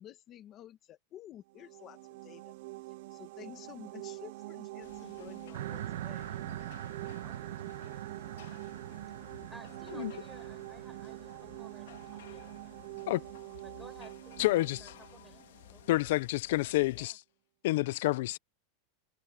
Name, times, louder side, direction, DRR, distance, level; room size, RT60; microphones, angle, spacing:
voice 1, 0.0-2.5 2.9-6.3, left 11 dB, 25° left, 2.0 m, -51 dB
sound 1, 1.5-16.2, right 20 dB, 50° right, 0.4 m, -46 dB
sound 2, 4.8-17.1, left 13 dB, 85° left, 2.8 m, -55 dB
sound 3, 5.5-13.0, right 12 dB, 75° right, 1.2 m, -44 dB
voice 2, 6.9-7.7 8.1-8.7 9.5-13.0 13.6-15.4 15.7-16.1 16.9-17.2, equal, ahead, 7.8 m, -58 dB
voice 3, 14.4-14.9 15.9-17.2 17.6-18.4, left 18 dB, 55° left, 0.4 m, -29 dB
supercardioid pair, 175°, 0 cm